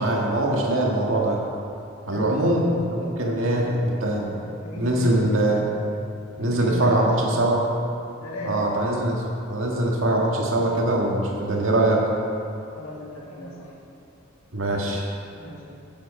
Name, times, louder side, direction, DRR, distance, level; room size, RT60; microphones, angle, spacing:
voice 1, 0.0-1.4 2.1-4.3 4.8-5.6 6.4-7.6 8.4-9.2 9.5-12.0 14.5-15.1, right 1 dB, 75° right, -2 dB, 1.7 m, -22 dB
voice 2, 2.0-2.6 3.2-4.1 4.4-5.4 6.4-7.5 8.1-8.7 12.7-13.7 15.3-15.9, equal, 90° left, -5 dB, 2.5 m, -37 dB
9.7 x 7.7 x 5.4 m, 2.6 s
head